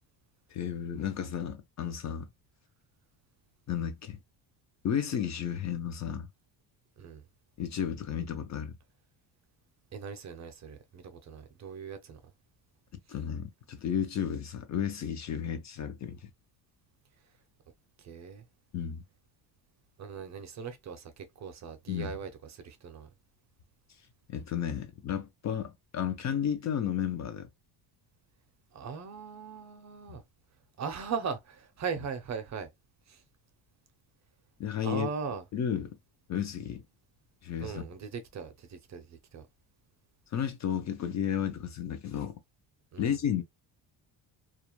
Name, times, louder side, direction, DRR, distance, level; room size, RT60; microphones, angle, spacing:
voice 1, 0.5-2.3 3.7-4.2 4.8-6.3 7.6-8.8 13.1-16.3 18.7-19.0 21.9-22.1 24.3-27.5 30.1-30.2 34.6-35.1 35.5-36.0 36.3-36.8 37.4-37.8 40.3-42.4 43.0-43.4, left 8 dB, 40° left, 0.4 m, -33 dB
voice 2, 9.9-12.2 18.0-18.4 20.0-23.1 28.7-30.2 30.8-32.7 33.1-33.2 34.8-35.4 37.6-39.5 42.9-43.1, right 6 dB, 40° right, 0.5 m, -39 dB
2.4 x 2.0 x 2.9 m
cardioid pair, 125°, 44 cm